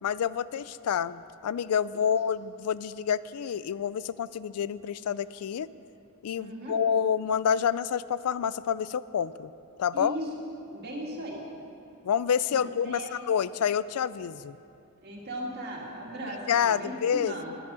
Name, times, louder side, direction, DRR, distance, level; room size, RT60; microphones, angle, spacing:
voice 1, 0.0-5.7 6.2-9.5 9.8-10.2 12.0-14.6 16.5-17.6, left 8 dB, 80° left, 17 dB, 0.4 m, -28 dB
voice 2, 6.3-6.8 9.9-10.3 10.7-11.4 12.5-13.1 15.0-17.5, right 1 dB, 45° right, -2 dB, 2.2 m, -37 dB
13.0 x 10.0 x 6.2 m, 2.6 s
head